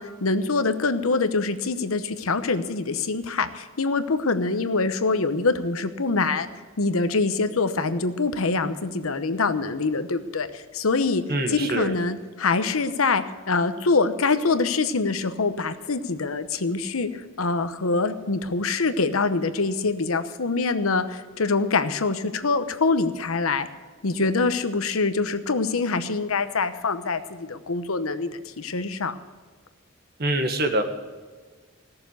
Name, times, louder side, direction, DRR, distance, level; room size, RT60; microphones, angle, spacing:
voice 1, 0.0-6.5 6.8-11.2 11.5-23.7 24.0-28.3 28.6-29.1, left 3 dB, 85° left, 11 dB, 0.9 m, -24 dB
voice 2, 11.3-11.9 30.2-30.8, right 1 dB, 50° right, 6 dB, 1.5 m, -24 dB
16.5 x 6.9 x 8.1 m, 1.5 s
head